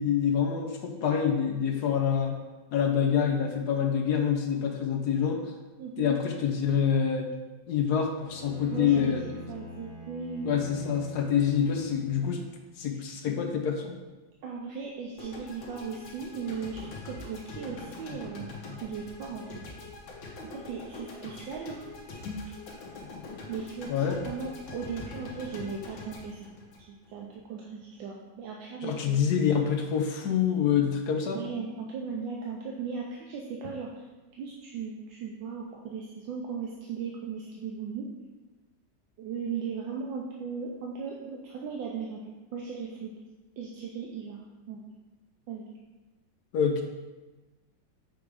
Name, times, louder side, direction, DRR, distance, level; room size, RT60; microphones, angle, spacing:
voice 1, 0.0-2.4 2.7-5.5 6.0-7.3 7.7-9.2 10.4-12.4 12.8-13.9 22.2-22.4 23.9-24.2 28.8-31.4 46.5-46.8, left 7 dB, 65° left, 4 dB, 1.1 m, -26 dB
voice 2, 5.8-6.1 8.7-9.2 9.5-10.6 10.9-11.0 12.9-13.1 14.4-19.6 20.2-21.8 23.5-26.5 26.9-29.2 31.3-34.1 34.4-38.0 39.2-42.2 42.5-43.1 43.6-44.4 44.7-44.8 45.5-45.6, right 5 dB, 75° right, -2 dB, 1.4 m, -37 dB
Bowed string instrument, 8.2-12.6, right 1 dB, 5° left, 2.0 m, -45 dB
sound 1, 15.2-27.4, left 3 dB, 80° left, 1.9 m, -43 dB
7.7 x 3.5 x 4.9 m, 1.2 s
omnidirectional pair, 2.1 m